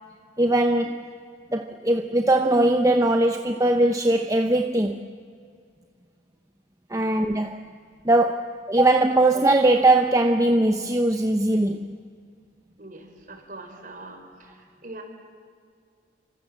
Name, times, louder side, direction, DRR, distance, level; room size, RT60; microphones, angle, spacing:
voice 1, 0.4-1.0 1.5-5.0 6.9-7.6 8.0-11.9, right 2 dB, 15° right, 0.8 m, -20 dB
voice 2, 12.8-15.0, right 2 dB, 45° right, 4.6 m, -43 dB
29.0 x 25.5 x 7.5 m
head